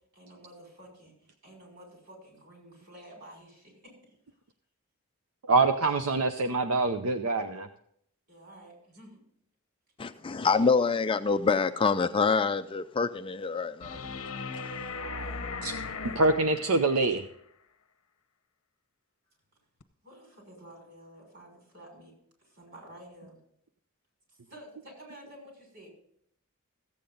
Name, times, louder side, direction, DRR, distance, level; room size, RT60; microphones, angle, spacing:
voice 1, 0.1-4.1 8.3-9.2 10.1-10.3 14.9-16.2 20.0-22.1 22.4-23.4 24.3-25.9, equal, 55° right, 6.0 m, -50 dB
voice 2, 5.5-7.7 15.6-15.7 16.2-17.2, right 3 dB, 80° right, 0.7 m, -25 dB
voice 3, 10.0-14.0 14.5-14.7, left 4 dB, 25° left, 0.4 m, -26 dB
sound 1, 13.8-17.2 19.8-19.9, left 4 dB, 70° left, 0.8 m, -38 dB
15.0 x 8.6 x 3.9 m
head